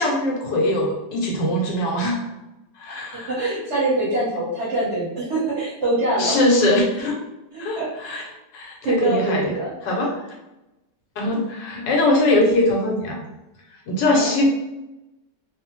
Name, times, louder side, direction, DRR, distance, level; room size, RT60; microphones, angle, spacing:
voice 1, 0.0-2.2 2.8-3.3 6.1-7.2 7.6-8.2 8.5-9.5 9.8-10.1 11.2-13.2 13.9-14.5, left 1 dB, 85° left, -1 dB, 1.4 m, -21 dB
voice 2, 3.0-6.4 7.5-8.2 8.8-9.7 14.1-14.3, right 2 dB, 50° right, -7 dB, 1.0 m, -24 dB
3.0 x 2.0 x 2.9 m, 0.96 s
omnidirectional pair, 1.8 m